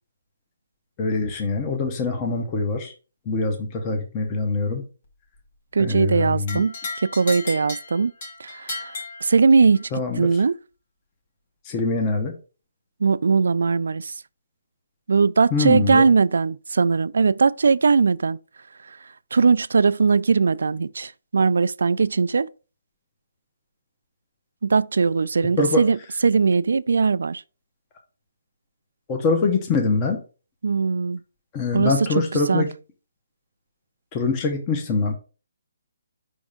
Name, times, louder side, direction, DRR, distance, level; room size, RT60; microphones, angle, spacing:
voice 1, 1.0-2.9 3.3-4.8 5.8-6.6 9.9-10.3 11.6-12.3 15.5-16.1 25.6-25.8 29.1-30.2 31.5-32.7 34.1-35.1, left 3 dB, 15° left, 0.7 m, -23 dB
voice 2, 5.7-6.7 7.0-8.1 8.4-8.9 9.2-9.9 10.2-10.6 13.0-14.1 15.1-18.4 19.3-22.5 24.6-26.0 26.2-27.4 30.6-31.2 31.7-32.7, right 4 dB, 65° right, 0.3 m, -20 dB
sound 1, 6.5-9.9, left 3 dB, 30° left, 1.5 m, -35 dB
5.4 x 3.5 x 5.0 m
hypercardioid pair, 180°, 0 cm